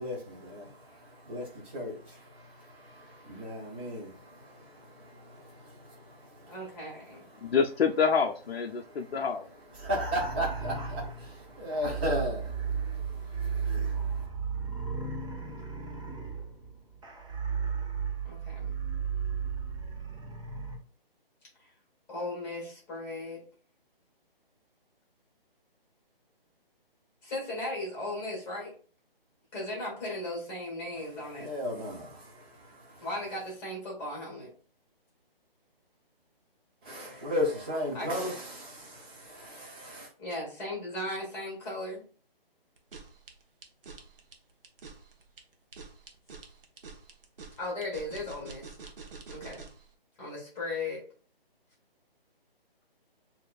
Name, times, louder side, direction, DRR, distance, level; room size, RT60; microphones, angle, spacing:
voice 1, 0.0-6.7 7.3-7.6 8.7-14.3 31.4-33.1 36.8-40.1, equal, 10° right, -5 dB, 0.7 m, -36 dB
voice 2, 6.5-7.2 18.2-18.7 22.1-23.4 27.2-28.7 29.5-31.5 33.0-34.5 37.9-38.1 40.2-42.0 47.6-48.7 49.3-49.6 50.2-51.0, left 2 dB, 10° left, -3 dB, 1.7 m, -37 dB
voice 3, 7.4-9.5, left 6 dB, 75° left, 2 dB, 0.6 m, -27 dB
sound 1, 9.7-20.8, right 6 dB, 35° right, 1.4 m, -34 dB
sound 2, 42.8-49.9, right 4 dB, 65° right, 1.0 m, -47 dB
6.3 x 2.8 x 2.3 m, 0.40 s
hypercardioid pair, 165°, 30 cm